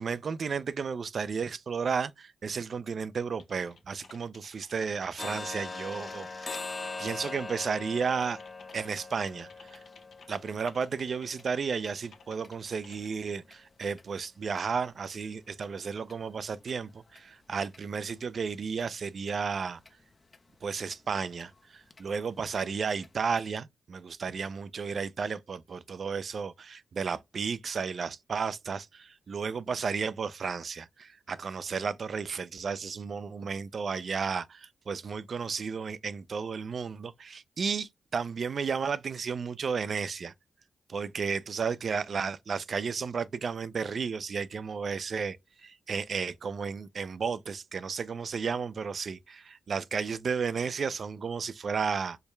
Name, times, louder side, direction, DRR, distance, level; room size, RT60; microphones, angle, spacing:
voice 1, 0.0-6.6 7.0-8.4 8.7-9.8 10.3-19.8 20.6-40.3 40.9-52.2, right 5 dB, 60° right, 0.4 m, -33 dB
Typing, 3.4-13.3, left 5 dB, 75° left, 0.7 m, -57 dB
sound 1, 5.2-13.0 13.4-13.6 14.0-14.1 14.6-14.7 15.0-15.1 15.6-15.7 16.1-16.2 16.7-16.8 17.2-17.3 17.7-17.8 18.2-18.3 18.8-18.9 19.3-19.4 19.9-20.0 20.3-20.4 20.9-21.0 21.4-21.5 21.9-22.0 22.5-22.6 23.0-23.1, left 3 dB, 40° left, 0.5 m, -42 dB
4.5 x 2.2 x 3.1 m
cardioid pair, 60°, 0 cm